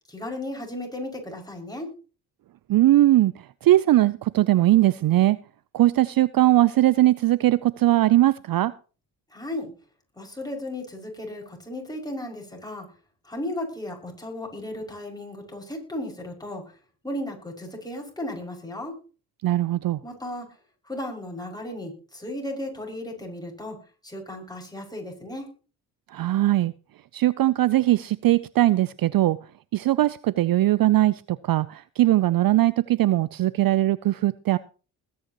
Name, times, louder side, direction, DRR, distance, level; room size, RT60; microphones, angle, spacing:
voice 1, 0.1-1.9 9.3-9.7 10.2-12.9 13.3-16.6 17.0-18.9 20.0-20.5 20.9-23.8 24.0-25.5, left 1 dB, 10° left, 0 dB, 5.9 m, -35 dB
voice 2, 2.7-3.3 3.6-5.4 5.7-8.7 19.4-20.0 26.1-26.7 27.1-29.4 29.7-34.6, right 15 dB, 50° right, 19 dB, 0.6 m, -20 dB
21.0 x 9.5 x 3.0 m, 0.36 s
hypercardioid pair, 50°, 45 cm